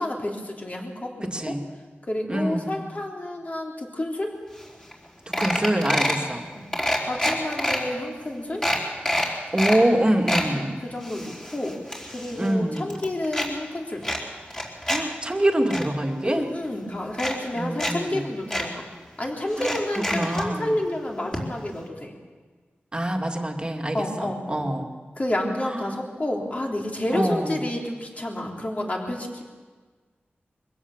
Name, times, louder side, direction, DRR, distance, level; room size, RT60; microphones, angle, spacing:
voice 1, 0.0-1.5 2.1-4.3 6.5-6.7 7.0-8.7 10.5-11.8 12.1-14.1 16.2-18.8 19.2-22.1 23.9-24.7 25.2-29.4, left 1 dB, 35° left, 0 dB, 3.4 m, -30 dB
voice 2, 1.3-1.6 2.3-2.8 5.4-6.5 9.5-10.7 12.4-12.9 14.9-16.5 17.5-18.3 19.6-19.8 20.1-20.8 22.9-24.9 25.6-25.9 27.1-27.7, right 1 dB, 25° right, 3 dB, 2.2 m, -25 dB
sound 1, 4.6-4.7 4.9-5.1 5.3-6.2 6.7-7.8 8.2-8.3 8.6-9.8 10.1-10.5 11.0-12.5 12.8-13.5 14.0-15.0 15.4-15.8 16.6-16.7 17.1-17.9 18.2-18.3 18.5-18.7 19.5-20.5 21.3-21.4 21.7-21.8, left 1 dB, 15° left, 4.0 m, -26 dB
23.0 x 16.5 x 7.3 m, 1.4 s
wide cardioid pair, 90°, 4 cm